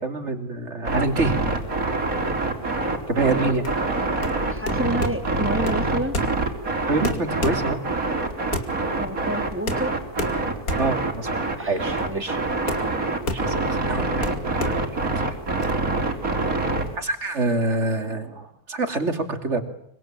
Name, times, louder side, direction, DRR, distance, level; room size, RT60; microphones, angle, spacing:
voice 1, 0.0-1.3 3.1-3.7 6.9-7.8 10.7-12.4 13.3-13.5 13.9-14.2 17.0-19.6, right 3 dB, 50° right, 7 dB, 3.3 m, -26 dB
sound 1, 0.8-16.9, right 3 dB, 70° right, 4.1 m, -25 dB
sound 2, 3.6-15.7, left 2 dB, 75° left, 3.0 m, -32 dB
voice 2, 4.5-6.1 9.0-10.0 11.6-12.2, right 1 dB, 10° right, 7 dB, 3.2 m, -29 dB
25.0 x 24.5 x 9.0 m, 0.69 s
omnidirectional pair, 1.5 m